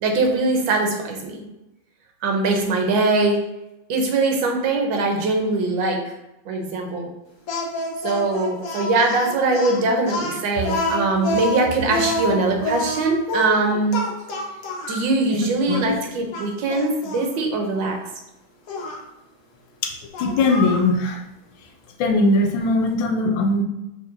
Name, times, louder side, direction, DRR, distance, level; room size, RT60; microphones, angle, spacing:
voice 1, 0.0-1.4 2.2-3.4 3.9-6.2 6.4-7.1 8.0-14.0 14.9-18.0, right 3 dB, 80° right, 2 dB, 1.5 m, -22 dB
Speech, 7.5-15.1 15.7-15.8 16.3-17.3 18.7-19.0 20.1-20.9, left 2 dB, 60° left, 1.0 m, -27 dB
voice 2, 15.4-15.9 19.8-19.9 20.2-21.2 22.0-23.6, left 2 dB, 80° left, 4 dB, 1.3 m, -20 dB
6.4 x 3.2 x 2.6 m, 0.93 s
omnidirectional pair, 2.1 m